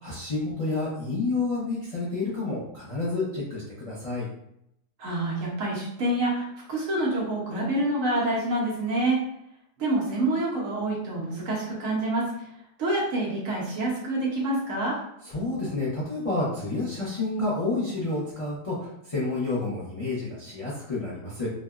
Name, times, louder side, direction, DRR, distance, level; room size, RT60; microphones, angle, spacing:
voice 1, 0.0-4.3 15.2-21.5, left 2 dB, 40° left, -9 dB, 0.5 m, -29 dB
voice 2, 5.0-9.2 9.8-12.2 12.8-14.9, right 1 dB, 65° right, -4 dB, 1.0 m, -27 dB
3.3 x 2.1 x 2.3 m, 0.78 s
omnidirectional pair, 1.7 m